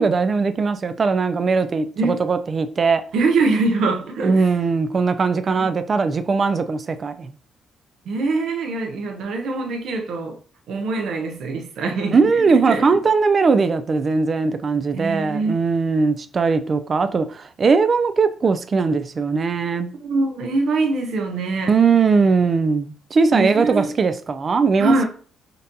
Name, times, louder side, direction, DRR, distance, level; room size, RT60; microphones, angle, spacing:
voice 1, 0.0-3.0 4.2-7.3 12.1-19.9 21.7-25.1, right 4 dB, 40° right, 0.3 m, -19 dB
voice 2, 3.1-4.4 5.4-5.7 8.1-10.4 10.7-12.2 12.5-12.8 14.9-15.5 20.0-21.7 23.3-23.9 24.8-25.1, right 3 dB, 75° right, 0.6 m, -23 dB
3.9 x 2.2 x 2.6 m
cardioid pair, 90°, 0 cm